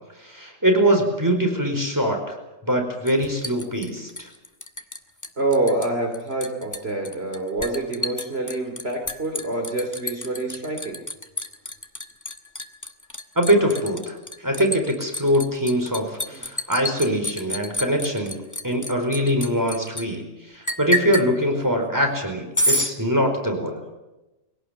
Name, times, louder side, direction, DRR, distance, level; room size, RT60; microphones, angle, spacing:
voice 1, 0.2-2.3 2.6-4.3 13.3-18.4 18.6-23.8, equal, 15° right, 4 dB, 4.8 m, -23 dB
Liquid, 3.1-5.0 5.2-5.9 6.1-20.0 20.7-21.3 22.5-22.9, equal, 15° left, 1.4 m, -29 dB
voice 2, 5.4-11.0 16.3-16.4, right 2 dB, 45° right, 3 dB, 3.1 m, -26 dB
23.5 x 17.5 x 9.3 m, 1.0 s
omnidirectional pair, 1.5 m